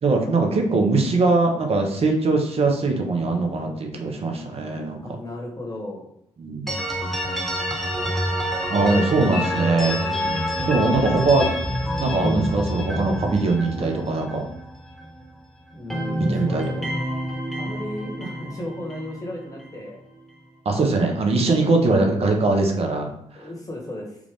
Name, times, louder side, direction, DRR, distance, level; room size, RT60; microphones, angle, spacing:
voice 1, 0.0-5.2 6.4-6.8 8.7-10.0 10.6-11.5 12.0-14.5 16.2-16.7 20.6-23.1 23.4-23.5, right 3 dB, 45° right, 2 dB, 0.9 m, -21 dB
voice 2, 5.0-6.1 15.7-16.9 17.6-20.0 21.9-22.1 23.3-24.2, left 1 dB, 25° left, -1 dB, 1.4 m, -35 dB
sound 1, 6.7-15.4 15.7-19.8, equal, ahead, 1.2 m, -27 dB
3.6 x 2.5 x 3.5 m, 0.77 s
hypercardioid pair, 45°, 14 cm